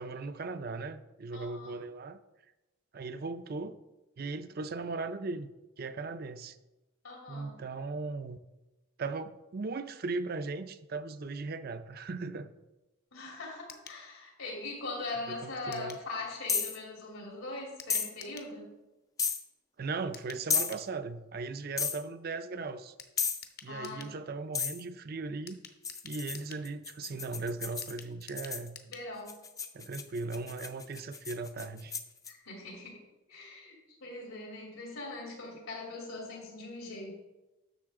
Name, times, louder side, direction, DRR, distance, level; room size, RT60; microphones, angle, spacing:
voice 1, 0.0-2.2 2.9-3.8 4.2-6.6 7.3-8.4 9.0-12.5 15.3-16.0 19.8-22.9 23.6-25.6 26.0-28.8 29.7-31.9, right 3 dB, 45° right, 11 dB, 0.5 m, -38 dB
voice 2, 1.3-1.8 7.0-7.6 13.1-18.7 23.7-24.2 28.9-29.4 32.3-33.0 33.3-37.1, left 2 dB, 85° left, -2 dB, 3.2 m, -41 dB
sound 1, 13.7-14.0 15.7-16.1 17.8-18.5 20.1-20.9 23.0-24.2 25.5-26.7 27.8-29.1 29.4-29.5 29.7-29.8, left 7 dB, 45° left, 0.8 m, -50 dB
sound 2, 16.5-16.8 17.9-18.1 19.2-19.4 20.5-20.7 21.8-22.0 23.2-23.5 24.5-24.8 25.8-28.7 29.3-32.3, left 6 dB, 15° left, 0.4 m, -33 dB
11.0 x 6.8 x 3.6 m, 1.0 s
head